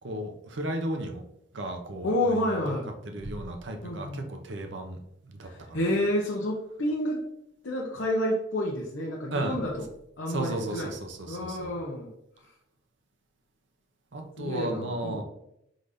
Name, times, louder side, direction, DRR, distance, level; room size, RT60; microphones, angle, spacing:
voice 1, 0.0-1.2 1.5-2.7 3.0-5.8 9.3-9.6 10.3-11.8 14.1-15.2, right 1 dB, 65° right, 5 dB, 0.7 m, -34 dB
voice 2, 2.0-2.9 3.8-4.2 5.5-7.2 7.6-9.8 10.2-10.9 11.3-12.1 14.4-15.2, left 1 dB, 75° left, -4 dB, 0.8 m, -29 dB
4.9 x 4.0 x 2.6 m, 0.78 s
head